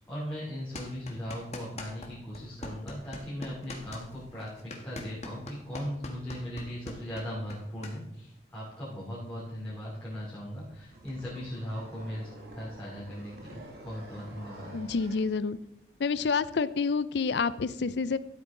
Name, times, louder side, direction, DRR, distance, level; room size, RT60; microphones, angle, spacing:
voice 1, 0.0-12.3 12.5-14.7, equal, 10° left, -9 dB, 3.0 m, -38 dB
sound 1, 0.7-2.1 2.3-7.9, left 1 dB, 35° left, 1.5 m, -42 dB
sound 2, 10.6-15.3, right 1 dB, 60° right, 2.2 m, -48 dB
voice 2, 14.7-15.6 16.0-18.2, left 5 dB, 70° left, 16 dB, 0.5 m, -28 dB
13.0 x 8.1 x 3.8 m, 0.80 s
head